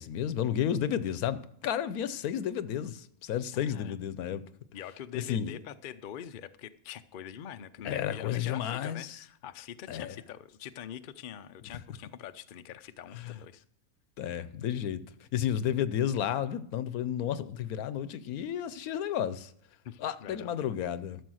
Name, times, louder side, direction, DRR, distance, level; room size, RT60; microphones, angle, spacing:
voice 1, 0.0-4.4 5.1-5.5 7.8-9.2 9.9-10.2 13.1-13.3 14.2-15.0 15.3-19.5 20.0-21.2, left 9 dB, 85° left, 1.2 m, -32 dB
voice 2, 3.5-4.0 4.7-13.6 19.8-20.5, left 9 dB, 60° left, 0.5 m, -44 dB
13.5 x 6.9 x 6.3 m
omnidirectional pair, 1.5 m